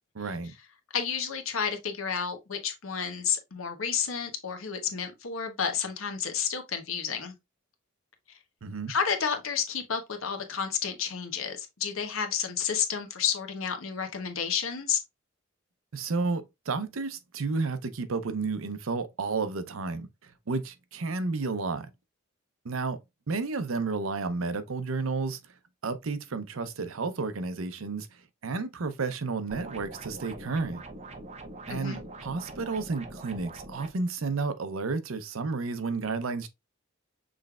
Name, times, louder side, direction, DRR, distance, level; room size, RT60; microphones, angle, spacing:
voice 1, 0.1-0.5 8.6-8.9 15.9-21.9 22.6-23.0 23.3-25.4 25.8-28.1 28.4-30.8 31.7-36.5, right 4 dB, 85° right, 0.6 m, -31 dB
voice 2, 0.9-7.3 8.9-15.0 31.7-32.0, left 7 dB, 90° left, 1.0 m, -31 dB
sound 1, 29.5-33.9, right 2 dB, 35° right, 0.7 m, -43 dB
6.2 x 3.3 x 2.3 m
head